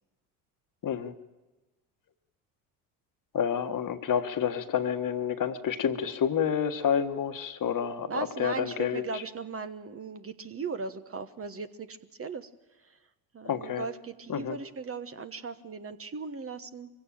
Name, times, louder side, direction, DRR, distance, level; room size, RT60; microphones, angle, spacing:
voice 1, 0.8-1.1 3.3-9.2 13.4-13.8 14.3-14.6, left 8 dB, 45° left, 8 dB, 1.6 m, -29 dB
voice 2, 8.1-12.5 12.8-13.0 13.3-16.9, right 5 dB, 30° right, 9 dB, 1.3 m, -38 dB
23.5 x 16.0 x 8.9 m, 1.2 s
hypercardioid pair, 65°, 45 cm